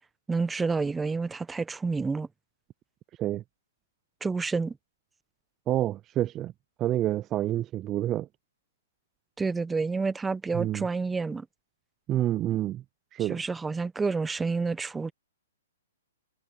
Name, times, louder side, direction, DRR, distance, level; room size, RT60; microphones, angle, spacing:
voice 1, 0.3-2.3 4.2-4.7 9.4-11.4 13.3-15.1, right 4 dB, 10° right, 1.1 m, -29 dB
voice 2, 5.7-6.5 6.8-8.3 10.5-10.9 12.1-12.8 13.1-13.4, right 13 dB, 25° right, 0.4 m, -28 dB
hypercardioid pair, 130°, 0 cm